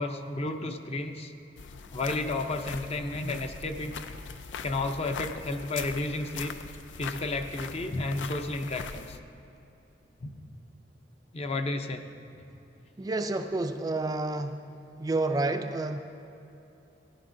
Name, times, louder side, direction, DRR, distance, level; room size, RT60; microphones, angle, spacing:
voice 1, 0.0-1.3 1.9-4.0 4.6-6.5 7.0-9.2 10.2-10.3 11.3-12.0, left 2 dB, 35° left, 6 dB, 0.6 m, -32 dB
sound 1, 1.6-9.2, left 5 dB, 85° left, 0.4 m, -41 dB
voice 2, 13.0-14.6 15.0-16.0, right 2 dB, 20° right, 6 dB, 0.3 m, -29 dB
15.0 x 11.0 x 2.6 m, 2.9 s
head